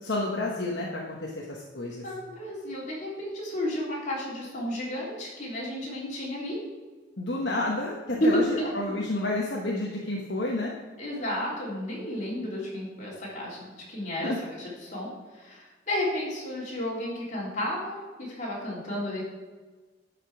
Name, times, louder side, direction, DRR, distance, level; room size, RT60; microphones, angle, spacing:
voice 1, 0.0-2.0 7.2-10.7 14.2-14.4, left 2 dB, 65° left, -2 dB, 1.1 m, -30 dB
voice 2, 2.0-6.6 8.2-8.4 11.0-19.2, left 1 dB, 45° left, -5 dB, 3.4 m, -32 dB
11.0 x 5.2 x 6.1 m, 1.4 s
head